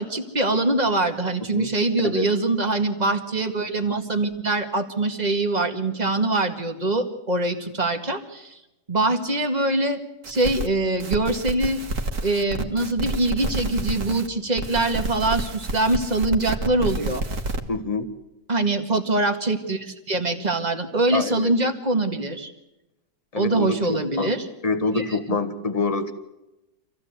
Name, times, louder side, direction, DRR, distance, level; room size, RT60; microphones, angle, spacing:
voice 1, 0.0-8.6 8.9-10.0 10.3-11.8 12.2-17.2 18.5-22.5 23.4-24.4 25.0-25.4, right 2 dB, 25° right, 5 dB, 1.9 m, -23 dB
sound 1, 10.2-10.7 11.0-14.3 14.6-17.6, right 2 dB, 50° right, 1.9 m, -29 dB
voice 2, 17.7-18.1 21.1-21.5 23.3-24.3 24.6-26.1, left 3 dB, 20° left, 8 dB, 1.6 m, -26 dB
26.5 x 16.0 x 8.2 m, 0.97 s
omnidirectional pair, 1.8 m